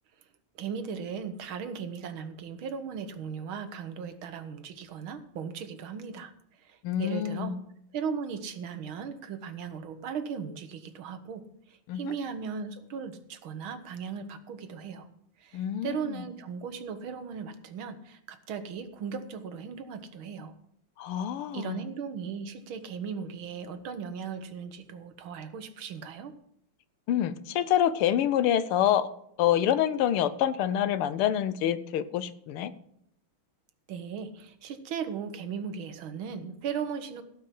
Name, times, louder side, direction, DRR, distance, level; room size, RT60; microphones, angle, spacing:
voice 1, 0.6-7.6 7.9-15.1 15.4-20.5 21.5-26.4 33.9-37.2, right 6 dB, 70° right, 10 dB, 1.9 m, -37 dB
voice 2, 6.8-7.6 11.9-12.1 15.5-16.2 21.0-21.8 27.1-29.1 29.4-32.7, left 10 dB, 90° left, 15 dB, 1.7 m, -27 dB
16.5 x 5.7 x 7.5 m, 0.73 s
omnidirectional pair, 2.3 m